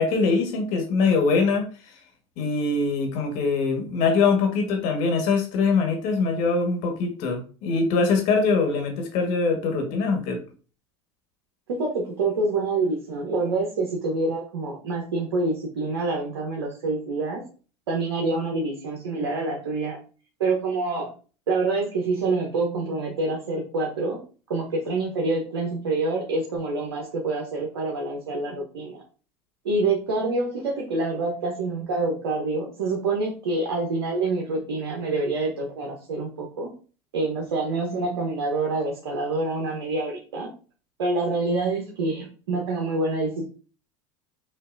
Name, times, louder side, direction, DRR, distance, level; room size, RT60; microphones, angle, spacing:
voice 1, 0.0-1.7 2.4-10.4, left 4 dB, 60° left, 3 dB, 1.5 m, -23 dB
voice 2, 11.7-17.4 17.9-20.0 20.4-21.1 21.5-24.2 24.5-29.0 29.6-36.7 37.1-40.5 41.0-43.5, right 3 dB, 85° right, -1 dB, 1.0 m, -26 dB
5.5 x 2.6 x 2.6 m, 0.38 s
hypercardioid pair, 95°, 14 cm